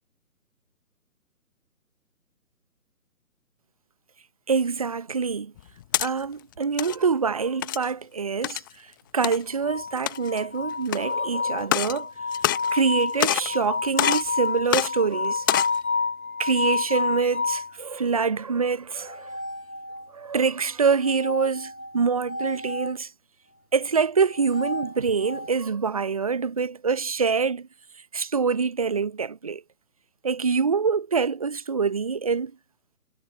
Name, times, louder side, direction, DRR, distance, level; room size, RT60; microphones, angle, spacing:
voice 1, 4.5-5.5 6.0-8.9 9.1-12.1 12.7-15.5 16.4-19.3 20.1-23.1 23.7-27.7 28.1-29.6 30.2-32.5, right 5 dB, 25° right, 0.7 m, -25 dB
sound 1, 5.6-6.1 6.6-7.0 7.6-7.9 8.4-8.7 9.2-9.4 9.9-10.4 10.9-11.0 11.6-12.0 12.3-12.9 13.2-13.5 14.0-14.3 14.7-14.9 15.4-15.8, left 14 dB, 15° left, 1.1 m, -25 dB
sound 2, 9.6-17.7 19.0-20.3 21.0-23.0 24.2-25.5, left 4 dB, 70° left, 2.8 m, -30 dB
figure-of-eight pair, 145°, 45 cm